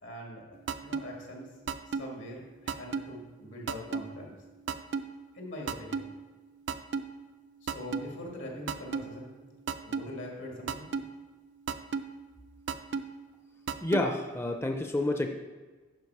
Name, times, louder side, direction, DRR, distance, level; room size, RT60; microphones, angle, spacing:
voice 1, 0.0-1.6 1.8-4.4 5.3-6.1 7.6-9.5 9.8-10.9, left 1 dB, 85° left, -1 dB, 2.1 m, -43 dB
sound 1, 0.7-1.0 1.7-2.0 2.7-3.0 3.7-4.0 4.7-5.0 5.7-6.0 6.7-7.0 7.7-8.0 8.7-9.0 9.7-10.0 10.7-11.0 11.7-12.0 12.7-13.0 13.7-14.0, right 6 dB, 70° right, 0.4 m, -31 dB
voice 2, 13.8-15.3, left 2 dB, 15° left, 4 dB, 0.4 m, -29 dB
11.0 x 4.7 x 4.7 m, 1.3 s
head